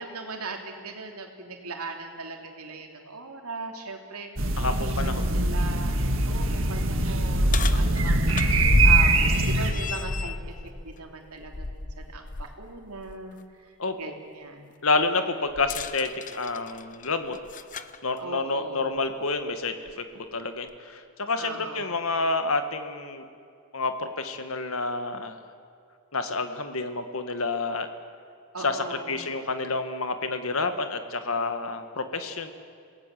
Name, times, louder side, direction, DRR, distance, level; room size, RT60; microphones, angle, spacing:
voice 1, 0.0-4.9 5.3-9.2 9.4-10.6 10.8-13.4 14.0-14.8 18.2-19.0 21.4-22.0 28.5-29.3, right 3 dB, 85° right, 3 dB, 3.1 m, -39 dB
sound 1, 4.4-9.7, right 2 dB, 60° right, 1.9 m, -23 dB
voice 2, 4.6-5.4 13.8-14.0 14.8-17.4 18.0-23.2 23.7-25.4 26.1-27.9 28.6-32.5, left 3 dB, 70° left, 8 dB, 1.7 m, -29 dB
sound 2, 6.9-12.5 12.9-13.1 15.5-18.0 19.0-19.1 19.9-20.0, left 2 dB, 35° left, 0.7 m, -30 dB
27.5 x 18.0 x 7.7 m, 2.4 s
head